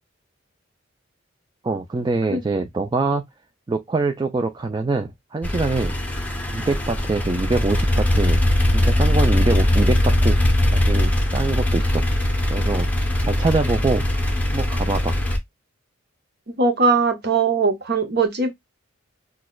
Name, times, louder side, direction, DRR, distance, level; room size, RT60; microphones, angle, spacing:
voice 1, 1.6-3.2 3.7-6.0 6.5-8.4 8.7-10.4 10.7-12.0 12.5-12.9 13.3-14.0 14.5-15.2, right 3 dB, 20° right, 0.3 m, -24 dB
sound 1, 5.4-15.4, left 1 dB, 5° left, 0.7 m, -20 dB
voice 2, 16.5-18.5, right 4 dB, 50° right, 1.0 m, -20 dB
6.3 x 2.2 x 2.2 m
head